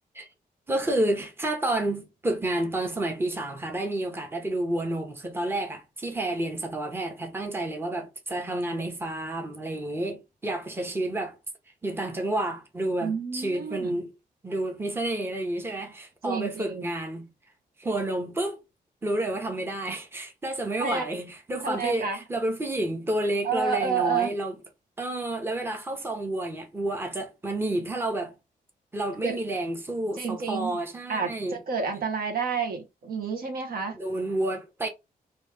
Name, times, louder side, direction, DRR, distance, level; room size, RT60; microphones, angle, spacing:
voice 1, 0.7-11.4 11.8-14.1 14.4-17.3 17.8-18.6 19.0-24.5 25.0-28.3 28.9-31.6 33.9-34.9, right 1 dB, 15° right, 0.9 m, -30 dB
voice 2, 13.0-14.0 16.2-16.8 20.8-21.0 21.6-22.2 23.4-24.3 29.2-29.4 30.2-30.8 31.1-34.0, right 6 dB, 70° right, 1.1 m, -29 dB
3.1 x 2.7 x 3.3 m
cardioid pair, 105°, 16 cm